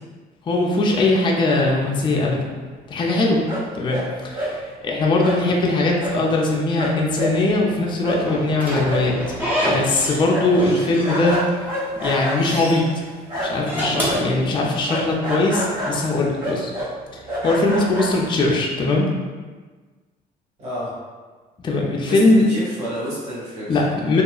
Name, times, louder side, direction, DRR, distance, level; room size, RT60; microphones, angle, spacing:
voice 1, 0.5-2.6 2.9-3.4 3.7-9.1 9.7-11.4 12.0-12.8 13.4-16.7 17.1-19.1 21.6-22.4 23.7-24.2, left 2 dB, 30° left, -2 dB, 0.4 m, -20 dB
sound 1, 3.5-4.1 4.3-4.6 5.2-5.4 6.0-6.2 6.5-6.6 6.8-13.7 14.0-18.6, equal, 55° right, 1.0 m, -28 dB
Slam / Squeak, 8.2-10.3 10.6-11.6 11.9-12.8 13.5-15.0, equal, 10° right, 0.7 m, -27 dB
voice 2, 20.6-20.9 22.0-23.8, equal, 40° right, -8 dB, 1.4 m, -30 dB
2.7 x 2.3 x 2.3 m, 1.4 s
cardioid pair, 110°, 17 cm